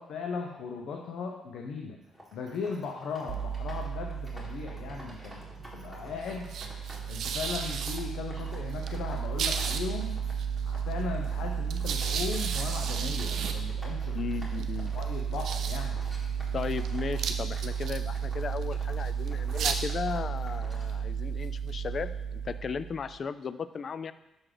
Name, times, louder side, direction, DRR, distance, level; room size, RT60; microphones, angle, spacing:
voice 1, 0.0-2.0 2.3-5.4 5.7-6.5 7.1-10.2 10.6-14.2 14.9-16.0, left 5 dB, 75° left, 1 dB, 0.7 m, -37 dB
sound 1, 2.0-20.9, equal, 5° left, 1.9 m, -51 dB
sound 2, 3.3-23.2, right 7 dB, 70° right, 0.5 m, -33 dB
voice 2, 14.1-14.9 16.5-24.1, left 6 dB, 50° left, 14 dB, 0.3 m, -36 dB
6.3 x 3.8 x 4.9 m, 0.92 s
cardioid pair, 90°, 0 cm